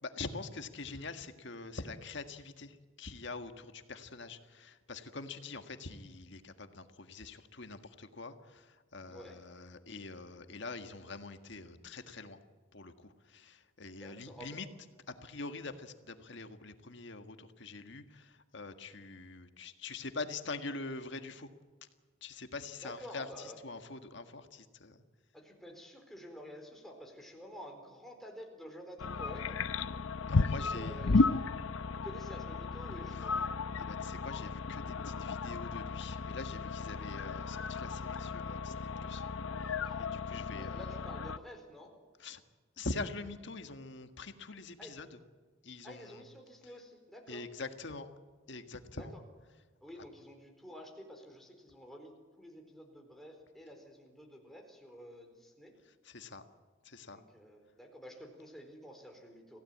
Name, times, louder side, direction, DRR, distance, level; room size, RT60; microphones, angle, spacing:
voice 1, 0.0-12.4 12.7-14.7 15.1-21.5 22.2-25.0 30.3-31.0 33.1-33.2 33.8-39.2 39.6-39.7 40.0-40.9 42.2-42.4 42.8-45.2 45.6-46.2 47.3-48.1 48.5-49.1 56.0-56.4 56.8-57.2, left 3 dB, 60° left, 8 dB, 1.7 m, -44 dB
voice 2, 9.1-9.4 14.0-14.6 22.8-23.6 25.3-29.6 30.5-31.3 32.0-33.5 39.8-39.9 40.6-41.9 44.8-45.0 45.8-47.4 48.9-49.2 49.8-55.7 57.1-59.6, equal, ahead, 2 dB, 4.2 m, -50 dB
sound 1, 29.0-41.4, left 4 dB, 80° left, 0.7 m, -34 dB
27.0 x 16.5 x 8.6 m, 1.4 s
head